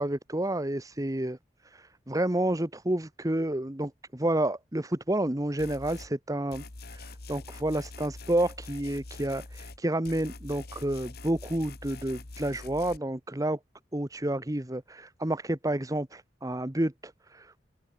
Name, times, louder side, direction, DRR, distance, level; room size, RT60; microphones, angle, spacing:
voice 1, 0.0-1.4 1.6-3.9 4.2-13.6 13.9-17.6, right 1 dB, 20° right, 1.2 m, -30 dB
sound 1, 5.6-6.1 6.5-9.8 10.0-13.0, left 3 dB, 55° left, 1.6 m, -44 dB
open air
head